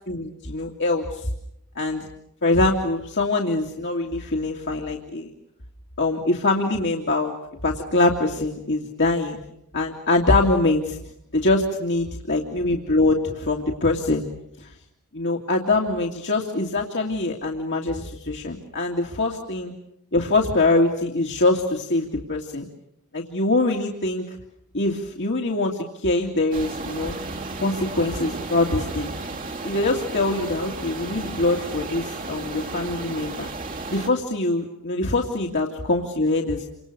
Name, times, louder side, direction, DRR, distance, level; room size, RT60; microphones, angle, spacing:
voice 1, 0.1-1.3 1.7-2.1 2.4-5.3 6.0-7.4 7.6-9.4 9.7-11.0 11.3-14.2 14.6-14.7 15.1-19.7 20.1-22.7 23.1-24.4 24.7-27.1 27.6-29.1 29.6-33.5 33.9-36.7, left 2 dB, 55° left, 0 dB, 2.5 m, -23 dB
sound 1, 26.5-34.1, right 3 dB, 40° right, 2.8 m, -33 dB
29.5 x 26.5 x 6.9 m, 0.78 s
head